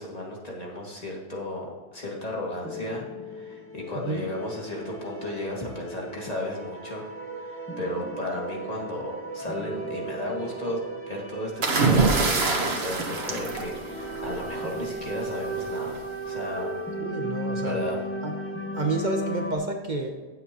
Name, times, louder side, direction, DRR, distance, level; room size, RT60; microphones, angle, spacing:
voice 1, 0.0-7.0 7.3-10.8 11.1-16.7 17.6-18.0, left 1 dB, 35° left, -3 dB, 2.4 m, -34 dB
sound 1, 2.6-19.5, right 1 dB, 10° left, 1.7 m, -35 dB
sound 2, 11.6-14.4 15.6-15.9, right 3 dB, 70° right, 1.6 m, -24 dB
voice 2, 17.0-17.8 18.2-18.3 18.7-20.2, right 2 dB, 45° right, 3 dB, 1.1 m, -29 dB
15.5 x 8.0 x 3.0 m, 1.4 s
omnidirectional pair, 1.1 m